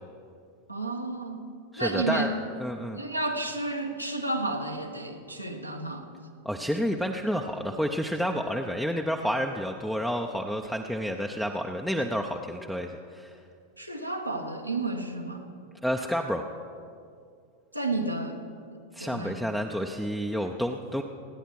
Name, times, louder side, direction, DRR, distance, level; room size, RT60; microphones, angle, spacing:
voice 1, 0.7-1.5 1.8-2.3 2.9-6.0 13.8-15.4 17.7-18.4 18.7-19.3, right 2 dB, 90° right, 1 dB, 1.6 m, -31 dB
voice 2, 1.7-2.3 2.6-3.0 6.4-13.4 15.8-16.4 18.9-21.0, equal, ahead, 2 dB, 0.8 m, -30 dB
28.0 x 10.0 x 4.7 m, 2.3 s
figure-of-eight pair, 90°, 0 cm